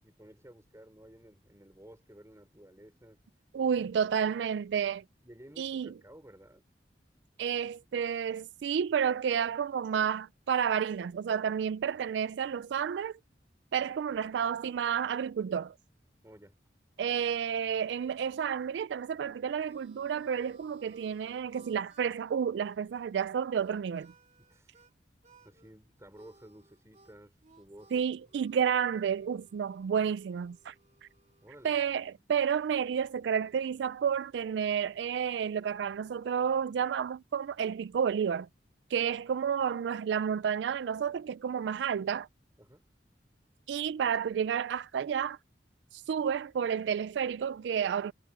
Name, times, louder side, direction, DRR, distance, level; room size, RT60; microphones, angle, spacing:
voice 1, 0.0-3.2 5.2-6.6 16.2-16.6 24.4-24.7 25.4-28.1 31.4-31.8 42.6-42.8, right 1 dB, 15° right, 4.7 m, -54 dB
voice 2, 3.5-5.0 5.6-5.9 7.4-13.2 13.7-15.7 17.0-24.1 27.9-30.7 31.6-38.5 38.9-42.3 43.7-45.4 45.9-48.1, right 7 dB, 75° right, 0.3 m, -31 dB
Harmonica, 19.1-24.9 25.2-25.7 26.1-32.1, right 3 dB, 40° right, 3.1 m, -63 dB
head